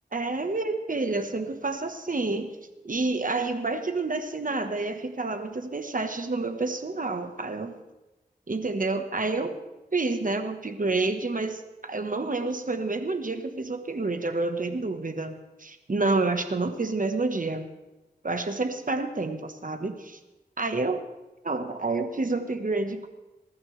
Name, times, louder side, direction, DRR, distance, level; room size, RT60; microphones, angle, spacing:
voice 1, 0.1-2.5 2.8-7.7 8.5-9.6 9.9-17.7 18.2-20.2 20.6-21.0 21.4-23.1, right 3 dB, 50° right, 7 dB, 1.3 m, -29 dB
20.5 x 14.0 x 3.3 m, 1.0 s
wide cardioid pair, 50°, 17 cm